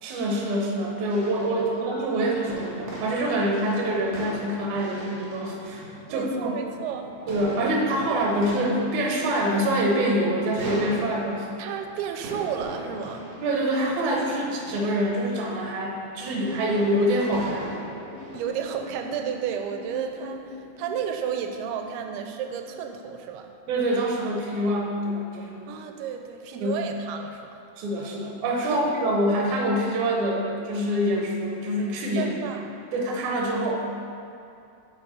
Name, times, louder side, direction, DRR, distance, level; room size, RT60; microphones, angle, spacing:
voice 1, 0.0-6.6 7.3-11.5 13.4-17.8 23.7-25.7 26.6-26.8 27.8-32.4 32.9-33.9, right 1 dB, 70° right, 0 dB, 1.9 m, -25 dB
sound 1, 1.1-19.0, right 1 dB, 50° right, 1.9 m, -40 dB
voice 2, 6.1-7.2 11.6-13.3 18.3-23.5 25.7-27.5 28.6-28.8 32.2-32.7, right 8 dB, 90° right, 5 dB, 2.5 m, -32 dB
sound 2, 18.1-23.1, left 3 dB, 80° left, 1.0 m, -44 dB
8.7 x 4.4 x 4.2 m, 2.6 s
omnidirectional pair, 4.4 m